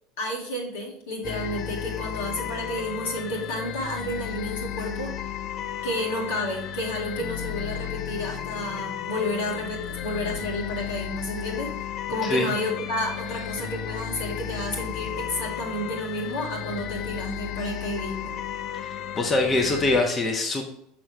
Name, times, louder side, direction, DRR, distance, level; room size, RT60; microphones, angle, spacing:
voice 1, 0.2-5.1 5.8-11.7 12.1-18.4, left 1 dB, 70° left, -1 dB, 2.0 m, -31 dB
sound 1, 1.2-20.0, left 10 dB, 45° left, 0.5 m, -34 dB
voice 2, 18.7-20.6, left 2 dB, 25° left, 1 dB, 1.1 m, -24 dB
6.2 x 6.0 x 3.2 m, 0.77 s
figure-of-eight pair, 75°, 0 cm